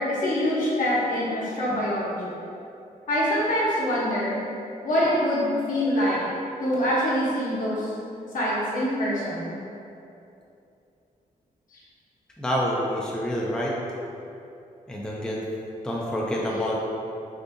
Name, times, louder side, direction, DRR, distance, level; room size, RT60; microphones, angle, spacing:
voice 1, 0.0-2.4 3.1-4.4 4.8-6.2 6.6-7.9 8.3-9.5 11.7-11.8, equal, 65° left, -7 dB, 1.0 m, -25 dB
voice 2, 12.4-13.8 14.9-15.4 15.8-16.8, equal, 5° left, -4 dB, 0.4 m, -27 dB
3.6 x 2.6 x 2.6 m, 2.7 s
cardioid pair, 75°, 15 cm